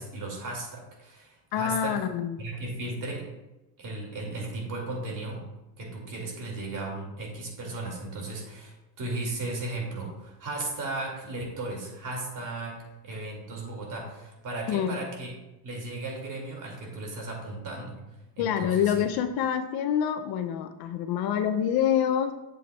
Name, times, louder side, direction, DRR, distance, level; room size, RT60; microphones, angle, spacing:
voice 1, 0.0-2.0 2.4-3.2 3.8-5.4 5.8-15.3 15.6-18.0 18.4-19.0, right 2 dB, 40° right, 0 dB, 2.4 m, -36 dB
voice 2, 1.5-2.4 14.7-15.1 18.4-22.3, left 9 dB, 50° left, 8 dB, 0.6 m, -26 dB
7.7 x 7.6 x 2.3 m, 0.98 s
supercardioid pair, 110°, 47 cm